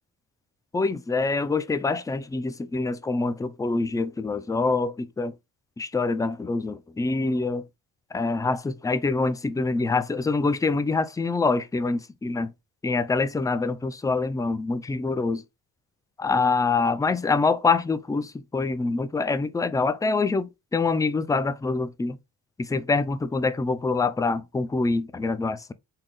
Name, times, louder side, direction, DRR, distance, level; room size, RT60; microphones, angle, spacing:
voice 1, 0.7-5.3 5.8-7.6 8.1-12.5 12.8-15.4 16.2-22.2 22.6-25.7, left 3 dB, 10° left, 0.4 m, -25 dB
3.7 x 2.9 x 3.4 m
supercardioid pair, 55°, 46 cm